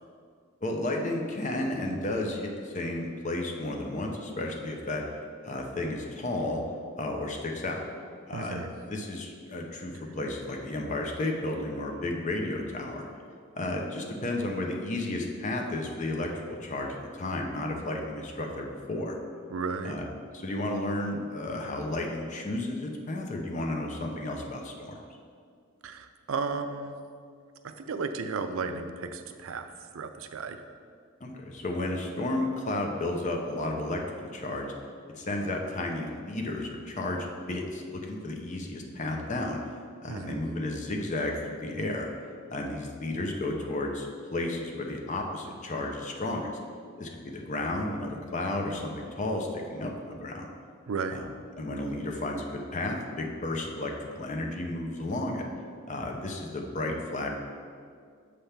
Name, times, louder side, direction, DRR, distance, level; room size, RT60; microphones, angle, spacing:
voice 1, 0.6-5.0 5.4-6.6 7.0-7.8 8.3-8.6 8.9-13.1 13.6-19.2 19.8-20.1 20.3-25.0 31.2-34.7 35.2-39.6 40.0-42.1 42.5-46.5 47.0-50.5 51.1-51.3 51.6-55.4 55.9-57.3, left 2 dB, 35° left, 1 dB, 0.7 m, -32 dB
voice 2, 8.3-8.7 19.5-20.0 25.8-27.0 27.6-30.6 40.1-40.4 50.9-51.2, right 4 dB, 85° right, 8 dB, 0.4 m, -34 dB
6.9 x 3.4 x 5.7 m, 2.2 s
head